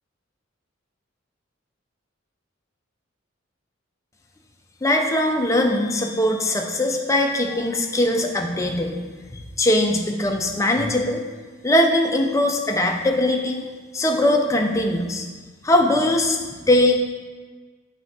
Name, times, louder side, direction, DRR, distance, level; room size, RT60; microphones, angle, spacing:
voice 1, 4.8-9.0 9.3-11.2 11.6-13.6 13.9-15.3 15.6-16.4 16.7-17.0, left 1 dB, 15° left, 3 dB, 0.5 m, -20 dB
6.6 x 3.5 x 4.7 m, 1.4 s
head